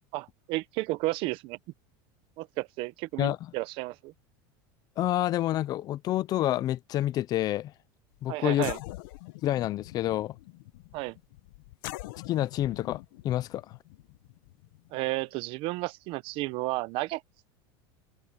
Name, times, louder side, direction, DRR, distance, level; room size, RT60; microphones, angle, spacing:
voice 1, 0.1-1.6 2.4-4.1 8.3-8.8 10.9-11.2 14.9-17.2, right 20 dB, 50° right, 0.8 m, -32 dB
voice 2, 5.0-7.7 8.2-8.7 9.4-10.3 12.3-13.7, left 13 dB, 35° left, 0.6 m, -28 dB
sound 1, 8.1-8.2 8.5-15.4, left 20 dB, 70° left, 1.0 m, -43 dB
open air
supercardioid pair, 150°, 12 cm